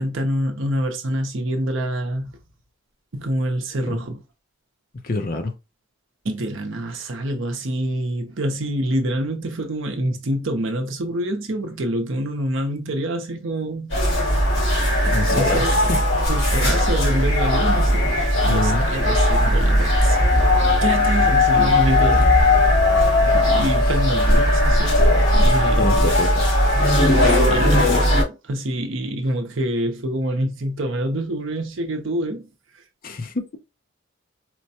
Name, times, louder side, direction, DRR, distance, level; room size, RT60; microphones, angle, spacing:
voice 1, 0.0-2.3 3.1-4.2 6.2-14.4 15.1-16.0 16.3-20.3 20.8-22.5 23.3-26.1 26.7-26.8 27.2-28.1 28.4-32.5, right 1 dB, 65° right, 0.7 m, -26 dB
voice 2, 5.0-5.5 15.1-16.0 18.5-18.9 22.1-22.3 23.0-23.4 23.8-23.9 25.8-26.6 33.0-33.6, left 2 dB, 40° left, 0.5 m, -27 dB
sound 1, 13.9-28.2, left 1 dB, 70° left, 2.2 m, -17 dB
4.4 x 2.1 x 2.7 m
head